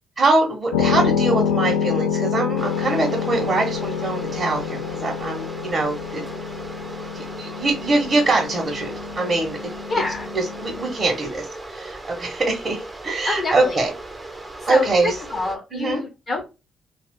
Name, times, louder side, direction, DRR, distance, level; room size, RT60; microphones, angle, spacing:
voice 1, 0.2-6.2 7.1-9.6 10.3-13.9 14.7-15.1 15.7-16.0, right 3 dB, 35° right, -1 dB, 1.0 m, -23 dB
sound 1, 0.7-10.9, left 7 dB, 85° left, 0.3 m, -27 dB
sound 2, 2.6-15.6, right 2 dB, 20° right, 0.7 m, -37 dB
voice 2, 9.9-10.3 13.3-13.8 14.6-16.5, left 3 dB, 50° left, 1 dB, 0.8 m, -27 dB
2.4 x 2.3 x 3.5 m, 0.28 s
hypercardioid pair, 45°, 0 cm